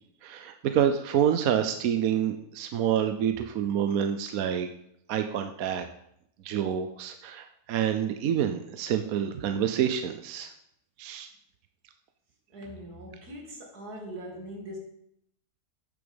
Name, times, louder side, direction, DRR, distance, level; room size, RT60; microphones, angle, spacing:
voice 1, 0.2-4.7 5.1-5.9 6.4-10.5 11.0-11.3, right 9 dB, 70° right, 7 dB, 1.1 m, -27 dB
voice 2, 12.5-14.8, equal, 85° right, 1 dB, 2.9 m, -41 dB
8.6 x 7.2 x 7.0 m, 0.75 s
omnidirectional pair, 1.6 m